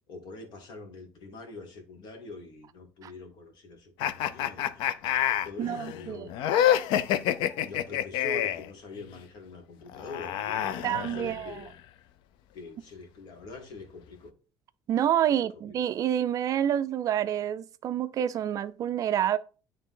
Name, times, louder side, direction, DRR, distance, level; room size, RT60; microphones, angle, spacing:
voice 1, 0.1-4.8 5.4-6.9 7.6-11.7 12.5-14.3 15.3-15.8, left 3 dB, 60° left, 1.7 m, -44 dB
sound 1, 4.0-8.7 9.9-11.6, left 11 dB, 75° left, 0.5 m, -27 dB
voice 2, 5.6-6.3 10.8-11.6 14.9-19.4, right 10 dB, 45° right, 0.4 m, -28 dB
9.4 x 3.3 x 3.7 m
cardioid pair, 140°, 9 cm